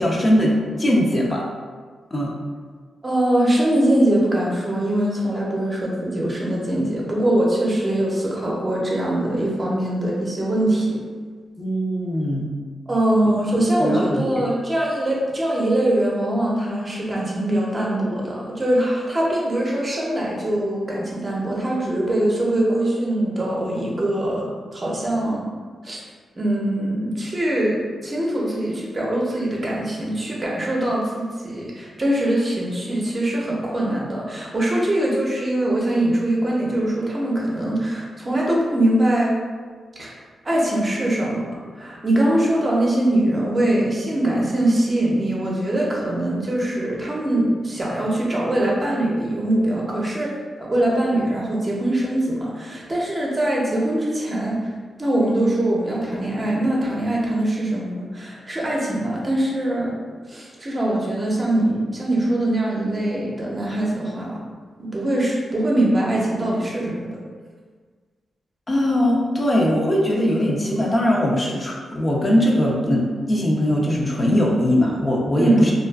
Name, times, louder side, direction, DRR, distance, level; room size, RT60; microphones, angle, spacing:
voice 1, 0.0-1.4 2.1-2.4 11.6-12.5 13.2-13.3 13.8-14.3 68.7-75.7, equal, 35° left, -3 dB, 0.5 m, -20 dB
voice 2, 3.0-11.0 12.9-24.4 24.7-25.5 25.8-26.0 26.4-39.3 40.0-40.1 40.4-41.5 41.8-50.3 50.6-54.7 55.0-59.9 60.3-64.4 64.8-67.1 75.3-75.7, right 1 dB, 35° right, -4 dB, 0.6 m, -22 dB
2.4 x 2.3 x 2.3 m, 1.6 s
cardioid pair, 65°, 0 cm